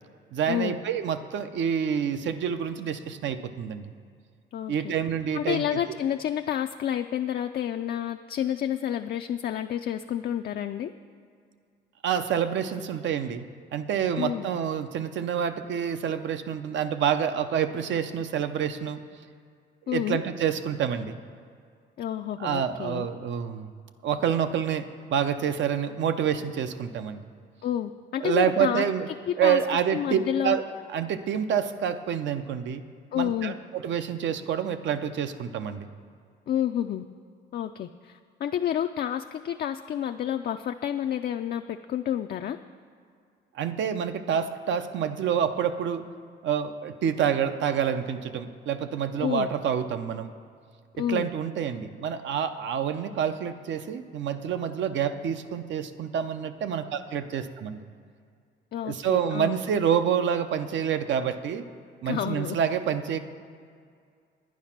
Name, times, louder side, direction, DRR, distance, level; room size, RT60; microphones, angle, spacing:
voice 1, 0.3-3.9 4.7-5.8 12.0-13.4 13.7-19.0 19.9-21.2 22.4-23.7 24.0-27.2 28.2-29.1 29.4-30.6 30.9-32.8 33.1-35.9 43.5-46.0 46.4-50.3 51.1-57.8 58.8-61.6 62.0-63.2, right 8 dB, 70° right, 10 dB, 0.7 m, -27 dB
voice 2, 4.5-4.9 5.3-10.9 14.2-14.5 19.9-20.2 22.0-23.1 27.6-28.8 29.3-29.6 29.9-30.6 33.1-33.6 36.5-37.0 37.5-42.6 49.2-49.5 50.9-51.3 58.7-59.6 62.1-62.6, left 10 dB, 50° left, 6 dB, 0.4 m, -29 dB
9.9 x 9.5 x 5.9 m, 2.2 s
cardioid pair, 90°, 20 cm